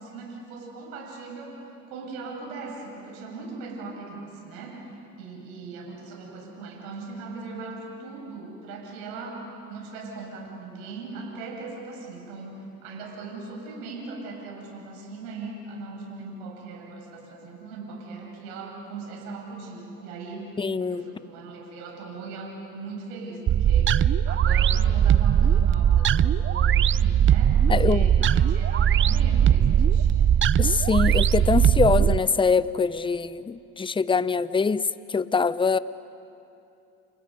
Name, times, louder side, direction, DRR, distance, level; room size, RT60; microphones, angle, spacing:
voice 1, 0.0-1.6 1.9-9.4 9.7-23.9 24.3-30.3, right 3 dB, 75° right, -1 dB, 6.8 m, -39 dB
voice 2, 20.6-21.0 27.7-28.0 30.6-35.8, left 5 dB, 10° left, 16 dB, 0.7 m, -23 dB
sound 1, 23.5-32.2, right 9 dB, 30° right, 0.5 m, -20 dB
30.0 x 29.0 x 5.3 m, 2.7 s
hypercardioid pair, 70°, 44 cm